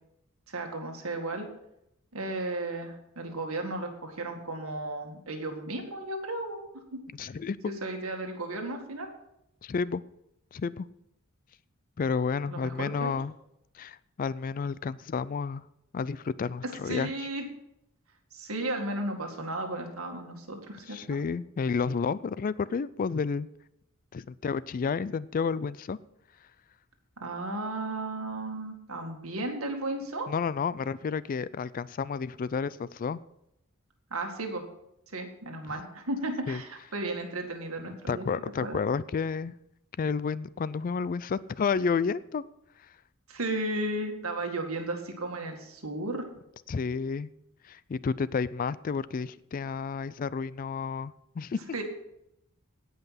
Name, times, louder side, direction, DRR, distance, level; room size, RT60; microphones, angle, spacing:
voice 1, 0.5-1.5 2.1-7.0 7.7-9.1 12.5-13.1 16.9-17.4 18.3-21.2 27.2-30.3 34.1-34.6 35.1-38.3 38.6-38.8 43.3-46.3 51.7-51.8, right 2 dB, 75° right, 3 dB, 2.0 m, -34 dB
voice 2, 7.2-7.6 9.6-10.0 10.5-10.9 12.0-13.3 13.7-15.6 15.9-17.3 20.9-23.5 24.1-26.0 30.3-33.2 36.5-36.6 37.9-39.5 40.0-42.4 46.7-47.3 47.6-51.6, left 5 dB, 40° left, 18 dB, 0.3 m, -31 dB
17.0 x 5.7 x 5.8 m, 0.82 s
head